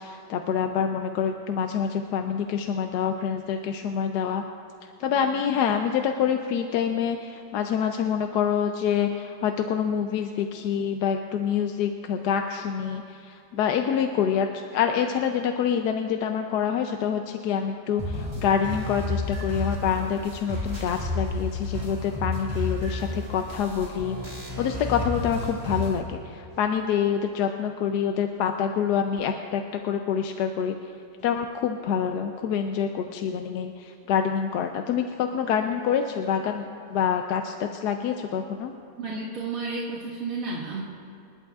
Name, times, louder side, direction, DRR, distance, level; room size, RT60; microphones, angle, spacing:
voice 1, 0.0-4.4 5.0-30.7 31.2-38.7, left 7 dB, 75° left, 5 dB, 1.2 m, -26 dB
sound 1, 18.0-26.0, left 2 dB, 15° right, 2.1 m, -31 dB
voice 2, 39.0-40.8, right 3 dB, 55° right, -8 dB, 2.0 m, -32 dB
28.0 x 11.0 x 2.4 m, 2.6 s
omnidirectional pair, 1.8 m